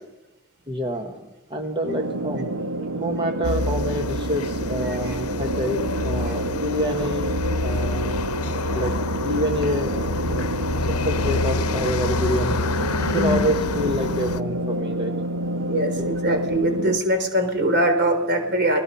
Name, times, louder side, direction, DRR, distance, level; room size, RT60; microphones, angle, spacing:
voice 1, 0.7-2.6 2.9-7.3 7.6-8.1 8.7-9.9 10.2-12.6 13.1-15.1 16.0-16.2, equal, 20° right, 3 dB, 1.4 m, -27 dB
sound 1, 1.8-17.0, right 1 dB, 80° right, 1.1 m, -28 dB
sound 2, 3.4-14.4, left 3 dB, 75° left, 0.9 m, -27 dB
voice 2, 13.0-13.4 15.6-18.8, right 1 dB, 50° right, 5 dB, 3.7 m, -22 dB
30.0 x 20.0 x 5.7 m, 1.0 s
head